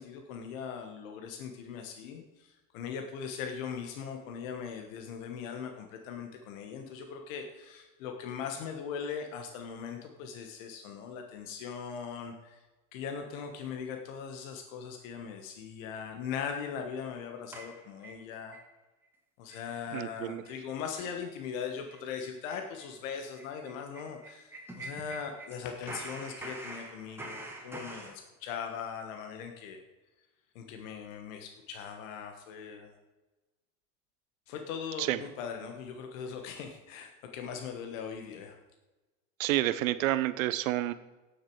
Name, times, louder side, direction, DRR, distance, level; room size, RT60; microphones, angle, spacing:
voice 1, 0.0-12.6 12.9-18.6 19.4-29.8 30.5-33.0 34.5-38.6, left 7 dB, 75° left, 4 dB, 1.4 m, -40 dB
sound 1, 17.5-18.7 19.0-19.1 19.5-19.7 20.0-20.1 20.5-20.6 20.9-21.1 21.4-21.6 21.9-25.5 25.8-28.2, right 2 dB, 5° right, 2.3 m, -45 dB
voice 2, 19.9-20.4 35.0-35.2 39.4-40.9, right 15 dB, 85° right, 14 dB, 0.8 m, -29 dB
16.5 x 6.7 x 4.7 m, 1.1 s
hypercardioid pair, 85°, 39 cm